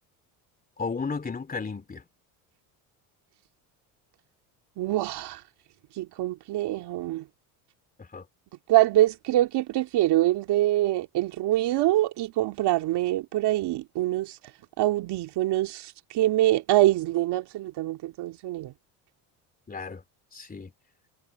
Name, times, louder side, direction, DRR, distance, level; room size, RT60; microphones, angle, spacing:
voice 1, 0.8-2.0 8.0-8.3 19.7-20.0 20.3-20.7, left 4 dB, 20° left, 3.3 m, -34 dB
voice 2, 4.8-5.4 6.0-7.2 8.7-14.4 14.8-18.7, right 15 dB, 60° right, 2.2 m, -24 dB
supercardioid pair, 90°, 44 cm